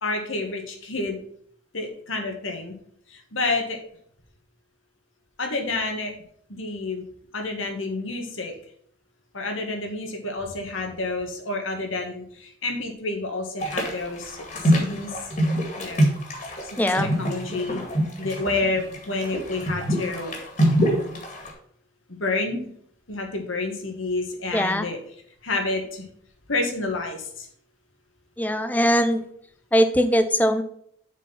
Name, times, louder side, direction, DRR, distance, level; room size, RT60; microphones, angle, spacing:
voice 1, 0.0-1.2 1.7-2.7 3.1-3.8 5.4-6.1 6.5-7.0 7.3-8.5 9.3-14.4 14.6-15.1 15.8-16.1 16.7-17.8 18.2-20.3 22.1-22.7 23.1-25.0 25.4-26.1 26.5-27.5, left 3 dB, 85° left, 3 dB, 1.7 m, -29 dB
sound 1, 13.6-21.5, equal, 40° left, 2.1 m, -25 dB
voice 2, 16.8-17.1 24.5-24.9 28.4-29.2 29.7-30.6, equal, 10° left, 9 dB, 0.5 m, -21 dB
7.2 x 4.5 x 5.7 m, 0.65 s
head